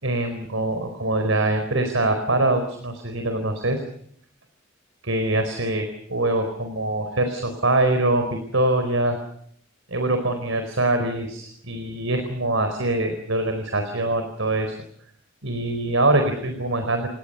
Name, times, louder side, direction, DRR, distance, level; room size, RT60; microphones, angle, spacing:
voice 1, 0.0-3.8 5.0-9.2 9.9-14.7 15.4-17.1, right 2 dB, 75° right, 7 dB, 4.4 m, -23 dB
30.0 x 19.5 x 6.8 m, 0.68 s
head